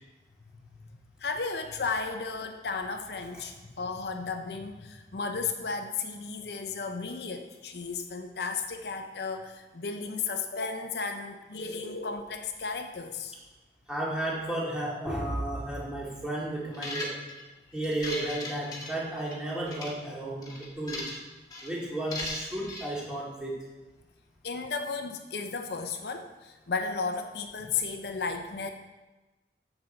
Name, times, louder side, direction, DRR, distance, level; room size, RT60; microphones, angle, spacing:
voice 1, 1.2-13.3 24.4-28.7, left 4 dB, 70° left, 6 dB, 0.7 m, -34 dB
voice 2, 13.9-17.2 17.7-21.1 21.6-23.6, right 1 dB, 5° right, -6 dB, 2.2 m, -33 dB
sound 1, 16.7-17.4 17.8-19.4 19.7-19.9 20.4-21.2 21.5-21.7 22.1-22.9, left 2 dB, 20° left, 1.4 m, -37 dB
9.6 x 6.9 x 4.4 m, 1.1 s
head